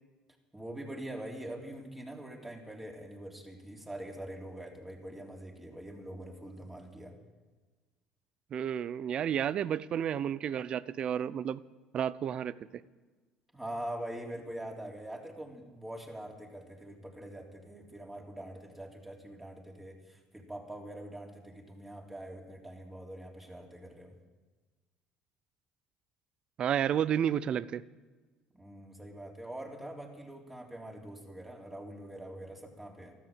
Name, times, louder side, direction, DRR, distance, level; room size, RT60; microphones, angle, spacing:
voice 1, 0.5-7.2 13.5-24.1 28.5-33.1, right 1 dB, 10° right, 0 dB, 3.6 m, -44 dB
voice 2, 8.5-11.6 11.9-12.8 26.6-27.8, right 9 dB, 50° right, 19 dB, 0.6 m, -31 dB
13.5 x 13.5 x 7.5 m, 1.3 s
supercardioid pair, 85°, 2 cm